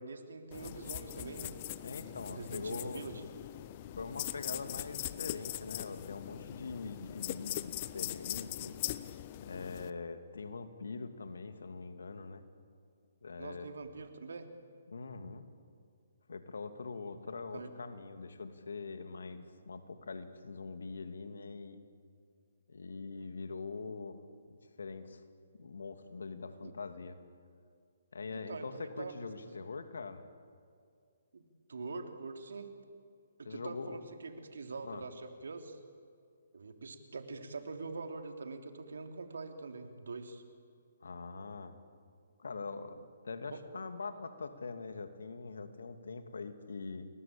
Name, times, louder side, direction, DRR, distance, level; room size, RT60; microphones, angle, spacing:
voice 1, 0.0-1.6 2.0-3.2 13.4-14.5 17.5-17.7 26.6-26.7 28.3-29.1 29.4-29.7 31.3-31.4 31.7-32.7 33.4-35.8 36.5-40.4 43.5-43.6, right 3 dB, 70° right, 6 dB, 3.2 m, -44 dB
sound 1, 0.5-9.9, left 14 dB, 35° left, 1.0 m, -41 dB
voice 2, 1.8-3.0 3.7-8.8 9.4-12.4 13.2-13.7 14.9-15.5 16.3-21.8 22.7-24.2 24.5-25.2 25.6-27.2 28.1-30.2 33.4-34.0 34.8-35.0 41.0-41.7 42.4-47.1, left 4 dB, 75° left, 8 dB, 2.6 m, -43 dB
29.5 x 22.0 x 8.8 m, 2.3 s
figure-of-eight pair, 135°, 0 cm